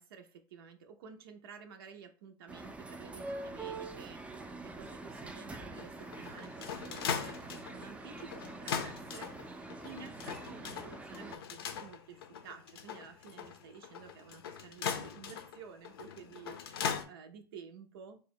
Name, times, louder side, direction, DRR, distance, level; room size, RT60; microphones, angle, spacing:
voice 1, 0.0-18.2, right 6 dB, 85° right, 5 dB, 0.5 m, -52 dB
sound 1, 2.5-11.4, right 2 dB, 10° right, 0.4 m, -45 dB
sound 2, 5.7-17.0, left 7 dB, 90° left, 0.6 m, -40 dB
3.4 x 2.1 x 4.3 m, 0.39 s
hypercardioid pair, 100°, 12 cm